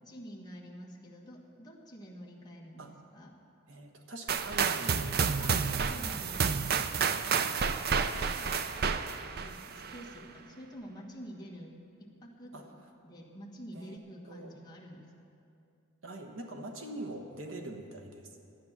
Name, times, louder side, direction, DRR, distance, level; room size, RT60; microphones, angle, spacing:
voice 1, 0.0-3.3 5.4-8.6 9.3-12.5 13.0-15.1, equal, 20° left, -3 dB, 1.5 m, -48 dB
voice 2, 3.7-5.9 6.9-7.2 7.7-7.9 12.5-12.6 13.7-14.0 14.3-14.5 16.0-18.4, right 1 dB, 75° right, 3 dB, 1.3 m, -44 dB
sound 1, 4.3-10.1, right 6 dB, 50° right, 0.5 m, -30 dB
12.5 x 9.7 x 7.3 m, 2.6 s
head